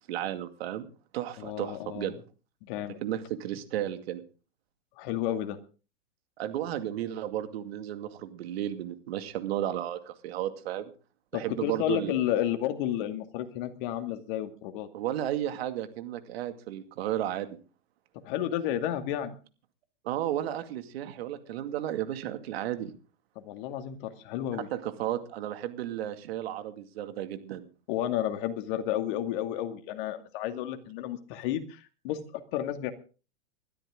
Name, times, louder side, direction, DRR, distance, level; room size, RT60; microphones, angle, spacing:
voice 1, 0.1-0.9 1.1-2.1 3.0-4.2 6.4-10.9 11.3-12.2 14.9-17.6 20.0-22.9 24.5-27.7, right 12 dB, 60° right, 9 dB, 2.3 m, -33 dB
voice 2, 1.4-2.2 2.6-3.0 5.0-5.6 11.3-14.9 18.2-19.4 23.4-24.7 27.9-32.9, left 11 dB, 50° left, 7 dB, 2.4 m, -32 dB
21.0 x 13.0 x 3.8 m, 0.35 s
hypercardioid pair, 135°, 34 cm